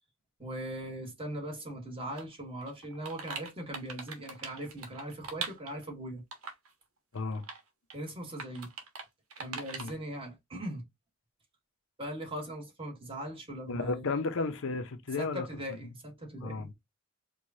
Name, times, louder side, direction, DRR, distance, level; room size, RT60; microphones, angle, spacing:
voice 1, 0.4-6.2 7.9-8.7 9.4-10.8 12.0-14.0 15.2-16.7, right 1 dB, 25° right, 1.3 m, -40 dB
sound 1, 2.2-2.3 2.6-5.8 6.3-6.7 7.2-7.6 7.9-8.0 8.4-9.1 9.3-9.9, right 4 dB, 75° right, 1.1 m, -41 dB
voice 2, 13.7-15.5 16.4-16.7, left 3 dB, 65° left, 0.6 m, -33 dB
4.7 x 2.3 x 2.7 m
head